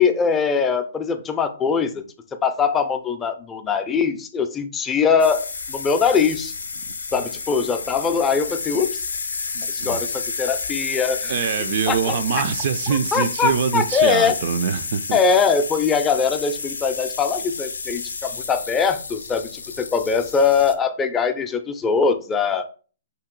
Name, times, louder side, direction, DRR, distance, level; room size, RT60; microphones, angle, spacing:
voice 1, 0.0-2.0 2.4-6.5 7.1-9.0 9.7-11.4 11.9-12.4 13.1-14.4 15.1-22.6, left 6 dB, 15° left, 0.4 m, -22 dB
sound 1, 5.2-20.7, left 4 dB, 80° left, 0.5 m, -31 dB
voice 2, 9.5-10.0 11.3-15.2, right 7 dB, 55° right, 0.3 m, -24 dB
2.8 x 2.6 x 3.8 m
hypercardioid pair, 130°, 0 cm